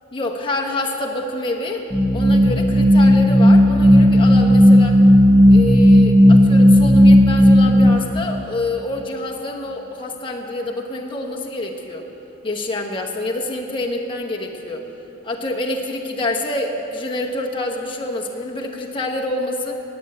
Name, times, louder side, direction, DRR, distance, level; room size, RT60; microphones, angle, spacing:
voice 1, 0.1-1.9 2.1-5.0 5.5-12.0 12.4-14.8 15.2-19.8, left 2 dB, 25° left, 0 dB, 1.0 m, -27 dB
sound 1, 1.9-7.9, equal, ahead, 1.3 m, -12 dB
9.2 x 8.7 x 9.5 m, 3.0 s
head